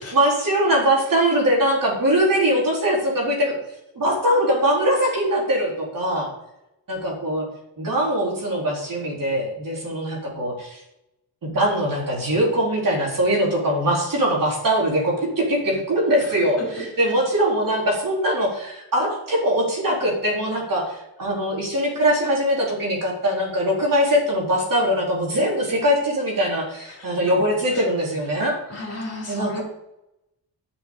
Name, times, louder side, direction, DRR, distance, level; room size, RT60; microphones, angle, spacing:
voice 1, 0.1-3.6 3.9-6.3 6.9-7.5 7.8-10.8 11.4-28.6 29.3-29.6, equal, 45° right, -3 dB, 4.4 m, -22 dB
voice 2, 28.7-29.6, left 1 dB, 35° left, -2 dB, 4.2 m, -32 dB
10.5 x 7.1 x 7.4 m, 0.87 s
wide cardioid pair, 145°, 44 cm